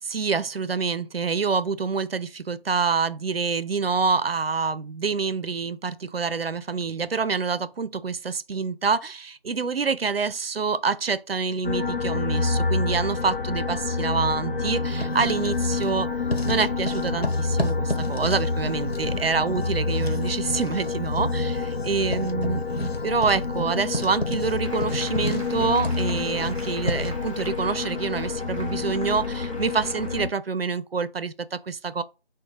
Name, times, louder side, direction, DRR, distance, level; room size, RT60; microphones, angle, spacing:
voice 1, 0.0-16.1 16.4-22.6 23.0-32.0, right 5 dB, 75° right, 0.5 m, -26 dB
sound 1, 11.6-30.3, left 4 dB, 65° left, 0.7 m, -28 dB
Writing, 14.8-16.0 16.3-27.3, left 1 dB, 85° left, 1.1 m, -33 dB
Applause, 24.6-30.2, equal, 35° left, 0.9 m, -43 dB
6.2 x 2.2 x 3.2 m
figure-of-eight pair, 175°, 30 cm